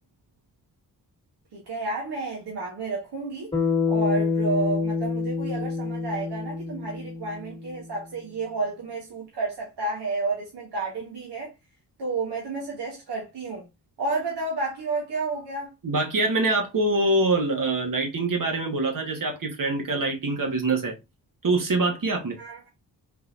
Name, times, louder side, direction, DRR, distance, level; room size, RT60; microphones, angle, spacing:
voice 1, 1.5-3.5 3.9-11.5 12.0-13.6 14.0-15.7 22.4-22.7, right 3 dB, 70° right, 1.2 m, -31 dB
Bass guitar, 3.5-7.9, left 4 dB, 15° left, 1.6 m, -27 dB
voice 2, 15.8-20.9 21.4-22.4, right 2 dB, 50° right, 1.3 m, -24 dB
3.9 x 2.8 x 2.4 m
cardioid pair, 50°, 41 cm